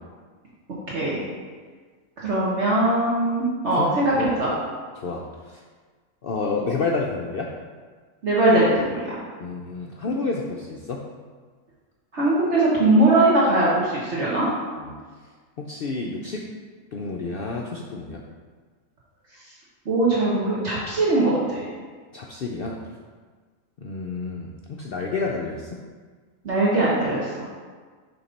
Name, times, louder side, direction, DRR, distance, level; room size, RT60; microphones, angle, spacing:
voice 1, 0.9-1.2 2.2-4.5 8.2-9.2 12.1-14.5 19.8-21.7 26.4-27.5, right 2 dB, 55° right, -7 dB, 1.4 m, -21 dB
voice 2, 3.8-4.3 5.0-5.6 6.2-7.5 9.4-11.0 14.8-15.0 15.6-16.4 16.9-18.2 22.1-22.8 23.8-25.8, left 3 dB, 65° left, -1 dB, 0.5 m, -30 dB
7.1 x 3.6 x 5.2 m, 1.5 s
omnidirectional pair, 1.5 m